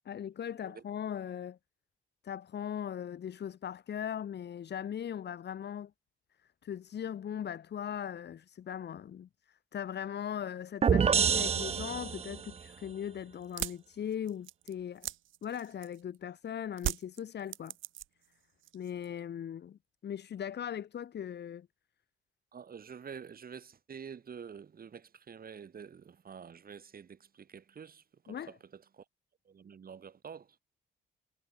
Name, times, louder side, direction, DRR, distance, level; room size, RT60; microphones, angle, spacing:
voice 1, 0.1-1.6 2.2-5.9 6.6-15.1 15.4-17.7 18.7-21.7 28.3-28.5, left 9 dB, 60° left, 3.0 m, -39 dB
sound 1, 10.8-12.5, right 6 dB, 30° right, 0.5 m, -27 dB
sound 2, 13.4-16.2 16.8-18.3 18.6-19.2, right 14 dB, 80° right, 1.1 m, -39 dB
voice 2, 22.5-29.0 29.5-30.6, right 7 dB, 50° right, 7.6 m, -48 dB
cardioid pair, 90°, 20 cm